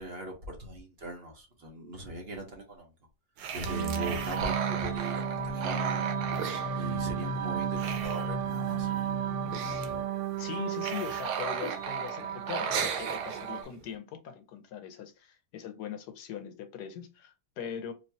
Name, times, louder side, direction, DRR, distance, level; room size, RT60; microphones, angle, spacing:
voice 1, 0.0-2.9 3.5-6.1 6.7-8.9, right 1 dB, 45° right, 1.1 m, -40 dB
sound 1, 3.4-7.4 7.6-8.7 9.0-9.1 9.3-10.0 10.4-13.8, right 6 dB, 85° right, 1.3 m, -36 dB
sound 2, 3.6-13.6, right 11 dB, 60° right, 0.8 m, -34 dB
sound 3, 4.1-10.1, left 3 dB, 60° left, 0.8 m, -39 dB
voice 2, 10.4-17.9, left 8 dB, 85° left, 1.4 m, -40 dB
4.5 x 2.8 x 2.7 m
omnidirectional pair, 1.7 m